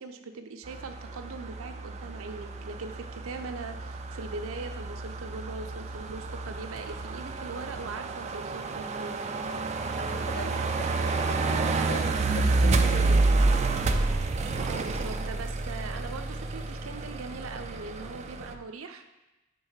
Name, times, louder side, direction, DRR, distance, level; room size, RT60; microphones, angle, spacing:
voice 1, 0.0-9.2 14.6-19.0, right 4 dB, 85° right, 7 dB, 0.6 m, -40 dB
sound 1, 0.7-18.5, right 3 dB, 35° right, 0.3 m, -29 dB
voice 2, 10.0-13.2, left 2 dB, 50° left, 4 dB, 0.6 m, -41 dB
5.4 x 3.5 x 5.5 m, 1.0 s
head